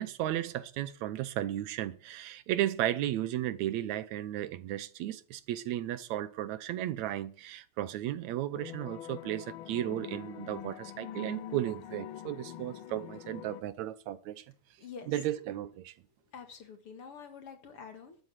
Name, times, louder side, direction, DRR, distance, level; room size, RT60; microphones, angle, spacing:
voice 1, 0.0-14.4 15.1-15.9, right 13 dB, 75° right, 2.0 m, -34 dB
sound 1, 8.5-13.6, left 11 dB, 75° left, 1.1 m, -44 dB
voice 2, 16.3-18.2, left 6 dB, 55° left, 2.4 m, -47 dB
12.5 x 8.1 x 7.4 m
omnidirectional pair, 3.3 m